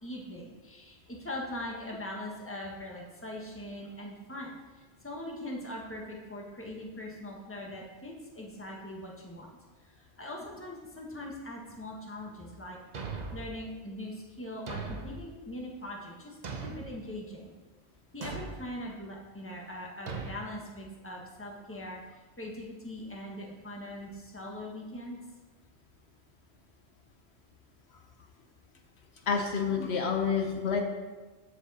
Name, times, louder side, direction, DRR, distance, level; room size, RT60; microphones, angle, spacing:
voice 1, 0.0-4.6 5.0-9.5 9.8-17.5 18.1-25.2, left 1 dB, 10° left, -2 dB, 1.4 m, -41 dB
Thump thud, 12.9-13.6 14.7-15.3 16.4-17.0 18.2-18.6 20.1-20.4, right 4 dB, 45° right, 0.9 m, -38 dB
voice 2, 29.3-30.8, left 6 dB, 70° left, 3 dB, 1.2 m, -28 dB
14.0 x 5.0 x 4.2 m, 1.3 s
omnidirectional pair, 1.1 m